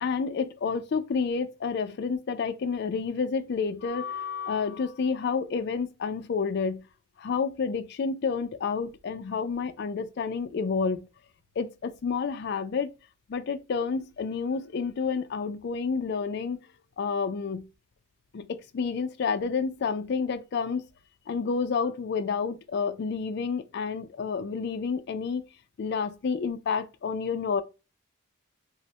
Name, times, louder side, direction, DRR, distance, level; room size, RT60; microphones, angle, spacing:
voice 1, 0.0-6.8 7.2-11.1 11.6-12.9 13.3-16.6 17.0-17.7 18.3-20.8 21.3-25.4 25.8-27.6, left 5 dB, 50° left, 0.3 m, -29 dB
3.1 x 2.0 x 2.8 m
head